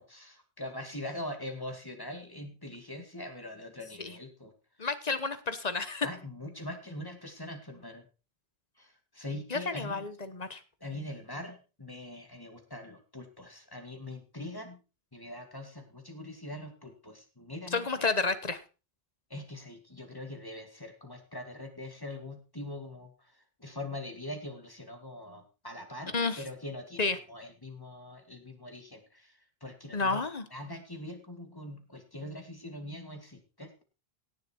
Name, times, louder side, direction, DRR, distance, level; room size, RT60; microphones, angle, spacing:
voice 1, 0.0-4.5 6.0-8.1 8.8-10.1 10.8-14.8 15.1-18.1 19.3-30.2 30.5-33.8, left 1 dB, 20° left, 5 dB, 2.2 m, -43 dB
voice 2, 4.8-6.1 9.5-10.6 17.7-18.6 26.1-26.4 27.0-27.2 29.9-30.5, left 4 dB, 40° left, 12 dB, 1.2 m, -30 dB
17.0 x 7.2 x 4.5 m, 0.32 s
omnidirectional pair, 1.1 m